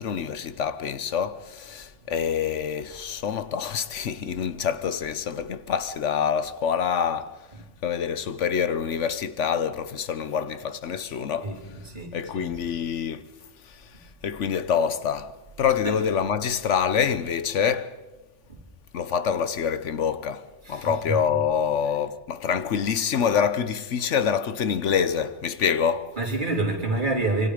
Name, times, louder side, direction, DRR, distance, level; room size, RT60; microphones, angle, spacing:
voice 1, 0.0-7.4 7.8-11.6 12.1-13.2 13.6-18.0 18.9-26.2, left 7 dB, 75° left, 1.2 m, -26 dB
voice 2, 11.4-12.5 15.8-16.0 18.5-18.6 20.6-21.2 26.1-27.5, right 2 dB, 40° right, 3.9 m, -28 dB
26.0 x 24.0 x 5.0 m
omnidirectional pair, 1.3 m